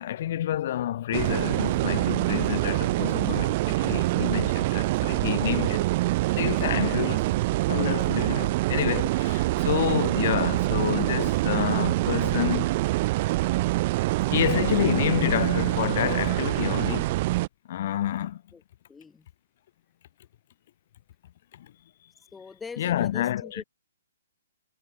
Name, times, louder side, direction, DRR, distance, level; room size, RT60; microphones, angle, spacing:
voice 1, 0.0-5.9 6.3-7.4 7.7-12.7 14.3-17.1 17.7-18.4 21.6-21.7 22.8-23.6, left 12 dB, 50° left, 1.5 m, -28 dB
sound 1, 1.1-17.5, right 19 dB, 40° right, 0.8 m, -25 dB
voice 2, 18.9-19.3 22.3-23.6, left 5 dB, 10° left, 1.7 m, -43 dB
hypercardioid pair, 150°, 0 cm